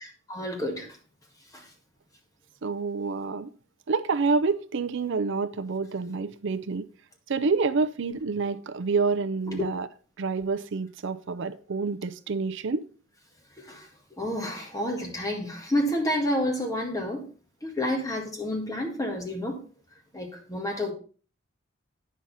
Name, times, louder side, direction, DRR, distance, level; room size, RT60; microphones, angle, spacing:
voice 1, 0.3-0.9 1.5-1.6 9.5-9.6 13.7-13.8 14.2-17.3 17.6-19.6 20.1-20.9, left 1 dB, 15° left, 1.9 m, -29 dB
voice 2, 2.6-3.5 3.9-6.9 7.3-9.9 10.2-12.8, right 4 dB, 65° right, 0.5 m, -28 dB
9.3 x 6.2 x 4.1 m
head